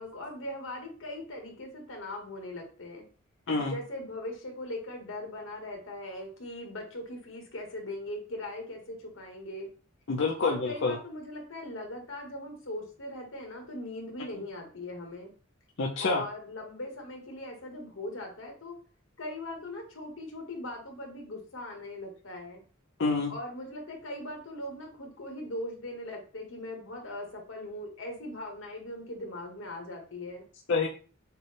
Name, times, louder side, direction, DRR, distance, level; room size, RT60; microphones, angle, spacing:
voice 1, 0.0-3.0 3.6-9.7 10.4-15.3 16.0-18.7 19.2-22.6 23.3-30.4, left 1 dB, 85° left, 2 dB, 1.4 m, -40 dB
voice 2, 10.1-11.0 15.8-16.2 23.0-23.3 30.7-30.9, left 3 dB, 65° left, 0 dB, 0.6 m, -27 dB
6.6 x 2.2 x 3.3 m, 0.40 s
head